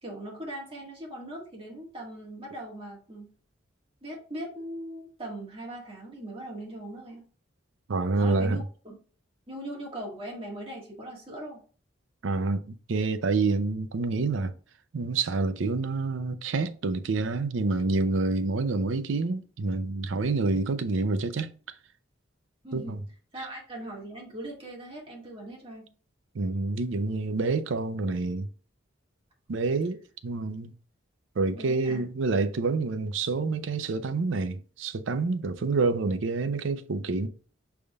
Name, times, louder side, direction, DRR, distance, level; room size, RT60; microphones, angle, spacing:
voice 1, 0.0-3.3 4.0-7.2 8.2-9.0 9.5-11.6 22.6-23.0 23.3-25.9 31.5-32.0, right 1 dB, 30° right, 1.6 m, -40 dB
voice 2, 7.9-8.6 12.2-14.5 14.9-21.5 22.7-23.0 26.3-28.5 29.5-30.7 31.4-37.3, right 3 dB, 80° right, 0.5 m, -27 dB
6.4 x 3.5 x 2.3 m
head